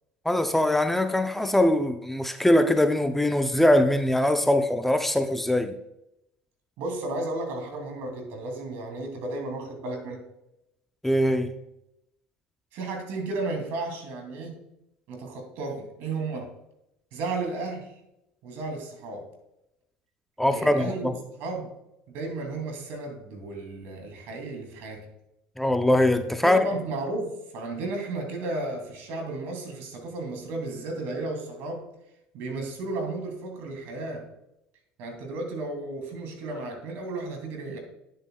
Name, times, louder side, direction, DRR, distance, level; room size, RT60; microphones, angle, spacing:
voice 1, 0.2-5.7 11.0-11.5 20.4-21.1 25.6-26.6, left 1 dB, 5° left, 0.6 m, -22 dB
voice 2, 6.8-10.2 12.7-14.5 15.1-16.5 17.1-18.0 18.4-19.3 20.5-21.1 21.4-21.7 22.1-25.1 26.4-31.9 32.3-34.3 35.0-37.8, right 2 dB, 70° right, 2.7 m, -33 dB
9.7 x 8.1 x 2.3 m
supercardioid pair, 90°, 4 cm